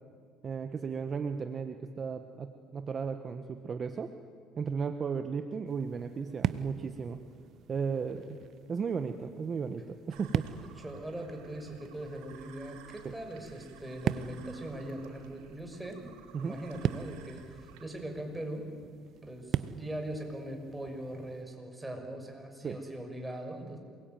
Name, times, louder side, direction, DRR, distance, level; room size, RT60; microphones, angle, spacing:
voice 1, 0.4-4.1 4.6-7.2 7.7-8.4 8.7-10.6 13.0-13.1 16.3-16.6 22.6-22.7, right 6 dB, 35° right, 7 dB, 1.4 m, -35 dB
sound 1, 5.6-21.4, right 10 dB, 55° right, 0.9 m, -40 dB
Alien swamp, 10.1-17.8, right 8 dB, 90° right, 5.1 m, -55 dB
voice 2, 10.7-18.7 19.2-23.8, right 1 dB, 5° right, 3 dB, 6.2 m, -41 dB
27.5 x 22.0 x 9.3 m, 2.1 s
supercardioid pair, 100°, 0 cm